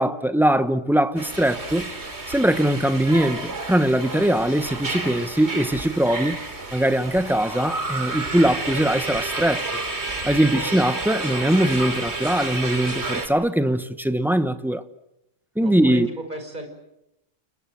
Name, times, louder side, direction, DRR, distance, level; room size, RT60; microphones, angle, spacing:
voice 1, 0.0-1.9 2.3-6.4 6.7-9.6 10.2-14.8 15.6-16.1, right 1 dB, ahead, 0.9 m, -21 dB
sound 1, 1.2-13.3, right 2 dB, 60° right, 3.0 m, -30 dB
voice 2, 10.5-10.8 15.6-16.7, right 1 dB, 40° right, 5.5 m, -35 dB
29.5 x 21.5 x 7.7 m
omnidirectional pair, 1.3 m